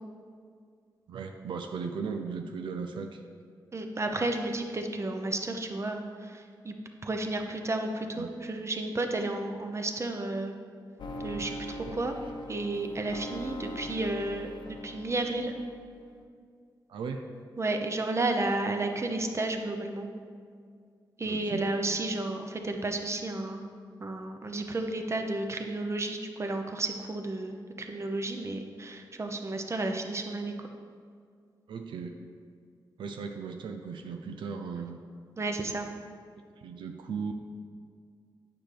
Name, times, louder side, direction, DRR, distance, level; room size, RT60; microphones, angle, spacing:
voice 1, 1.1-3.2 8.2-8.3 16.9-17.2 21.2-21.7 31.7-32.2 33.0-35.0 36.6-37.3, right 5 dB, 85° right, 4 dB, 0.4 m, -37 dB
voice 2, 3.7-6.7 7.0-10.5 11.2-12.1 12.5-15.5 17.6-20.1 21.2-23.6 24.0-30.7 35.4-35.9, right 2 dB, 35° right, 4 dB, 0.8 m, -32 dB
sound 1, 11.0-15.9, equal, 75° left, 0.7 m, -41 dB
8.8 x 5.9 x 3.4 m, 2.2 s
cardioid pair, 65°, 8 cm